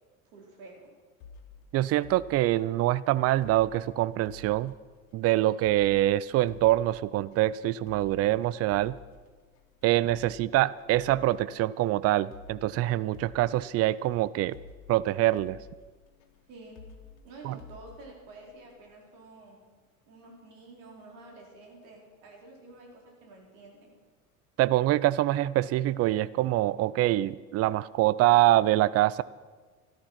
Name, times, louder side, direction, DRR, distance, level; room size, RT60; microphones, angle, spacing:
voice 1, 0.3-0.8 16.5-16.8 17.2-19.6 20.1-23.9, right 2 dB, 65° right, -1 dB, 4.4 m, -49 dB
sound 1, 1.2-19.0, left 5 dB, 55° left, 2.2 m, -52 dB
voice 2, 1.7-4.7 5.1-9.0 9.8-14.6 14.9-15.6 17.4-17.6 24.6-29.2, right 15 dB, 35° right, 19 dB, 0.5 m, -25 dB
13.5 x 12.5 x 5.9 m, 1.4 s
hypercardioid pair, 75°, 42 cm